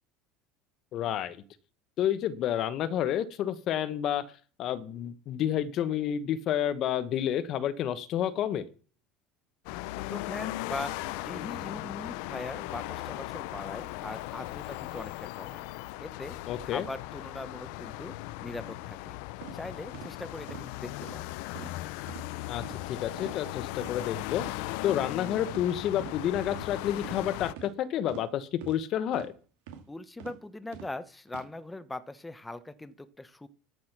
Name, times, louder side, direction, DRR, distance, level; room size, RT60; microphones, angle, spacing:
voice 1, 0.9-1.4 2.0-4.2 4.6-8.6 16.5-16.9 22.5-22.6 22.9-29.3, left 10 dB, 50° left, 14 dB, 1.1 m, -30 dB
sound 1, 9.6-27.5, left 18 dB, 75° left, 0.5 m, -38 dB
voice 2, 10.1-15.7 16.0-16.4 16.6-18.2 18.4-19.2 19.5-21.3 29.9-33.5, left 2 dB, 10° left, 11 dB, 0.9 m, -41 dB
sound 2, 19.4-19.6 19.9-20.1 20.5-20.7 21.0-21.2 21.5-21.8 22.1-22.2 22.6-22.8 23.2-23.4 23.7-23.9 24.3-24.5 24.9-25.0 25.5-25.7 26.0-26.2 26.5-26.7 27.0-27.2 27.6-27.7 28.1-28.2 28.6-28.8 29.1-29.3 29.7-29.8 30.2-30.3 30.7-30.9 31.3-31.4, right 8 dB, 85° right, 2.6 m, -44 dB
13.5 x 6.2 x 6.0 m, 0.39 s
supercardioid pair, 125°, 0 cm